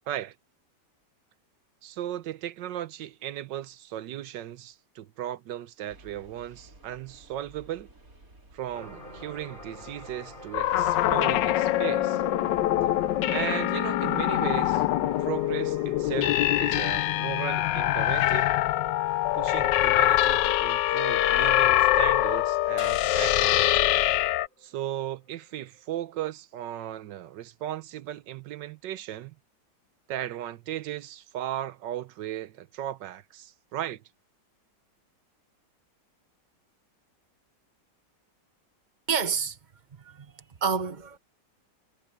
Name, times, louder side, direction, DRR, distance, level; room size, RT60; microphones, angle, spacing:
voice 1, 1.8-7.9 8.5-12.2 13.3-14.8 15.2-18.5 19.3-23.7 24.6-29.3 30.1-34.0, right 12 dB, 80° right, 1.4 m, -36 dB
sound 1, 5.9-21.7, right 2 dB, 50° right, 4.9 m, -57 dB
sound 2, 8.7-25.2 25.6-25.8, equal, 25° left, 4.6 m, -48 dB
sound 3, 10.5-24.5, left 14 dB, 80° left, 1.3 m, -24 dB
voice 2, 39.1-39.6 40.0-41.2, right 6 dB, 30° right, 1.2 m, -29 dB
omnidirectional pair, 1.9 m